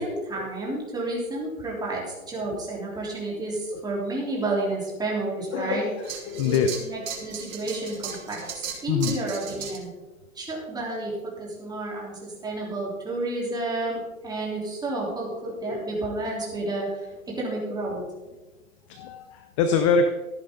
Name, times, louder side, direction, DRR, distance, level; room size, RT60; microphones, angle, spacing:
voice 1, 0.0-5.9 6.4-9.9 10.4-18.0, right 2 dB, 10° right, -3 dB, 3.6 m, -31 dB
voice 2, 5.5-6.7 8.9-9.1 15.7-15.8 19.0-20.1, left 5 dB, 25° left, 8 dB, 0.6 m, -24 dB
sound 1, 6.0-9.8, right 7 dB, 65° right, 3.4 m, -36 dB
14.0 x 11.0 x 3.8 m, 1.1 s
hypercardioid pair, 140°, 42 cm